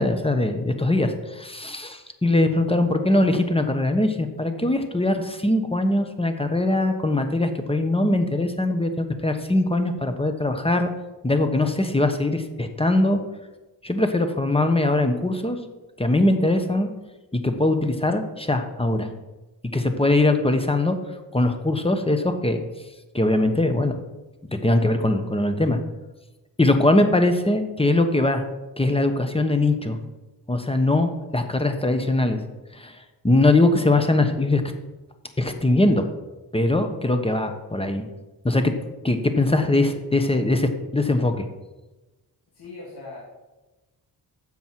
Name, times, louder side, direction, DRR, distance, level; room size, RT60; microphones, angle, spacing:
voice 1, 0.0-10.9 11.2-13.2 13.8-15.6 16.0-16.9 17.3-19.1 19.7-21.0 21.3-22.6 23.1-24.0 24.5-25.8 26.6-28.5 28.8-30.0 30.5-32.4 32.7-33.0 33.2-34.6 35.4-36.1 36.5-38.1 38.4-38.7 39.0-41.5, left 2 dB, 15° left, 7 dB, 1.1 m, -21 dB
voice 2, 42.5-43.2, left 3 dB, 65° left, -6 dB, 2.7 m, -39 dB
10.0 x 7.4 x 4.7 m, 1.1 s
cardioid pair, 70°, 42 cm